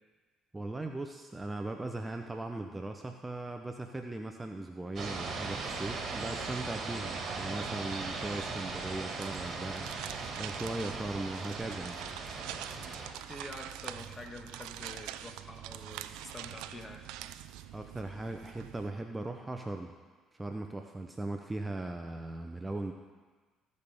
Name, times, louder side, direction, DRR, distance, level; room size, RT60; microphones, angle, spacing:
voice 1, 0.5-9.9 10.4-12.0 17.7-19.9 20.3-22.9, right 2 dB, 15° right, 4 dB, 0.7 m, -38 dB
sound 1, 5.0-13.1, right 4 dB, 50° right, 1.6 m, -38 dB
sound 2, 9.2-18.9, right 12 dB, 80° right, 0.3 m, -45 dB
voice 2, 13.3-17.1, left 1 dB, 20° left, 3 dB, 1.6 m, -47 dB
15.5 x 5.4 x 3.5 m, 1.4 s
supercardioid pair, 65°, 0 cm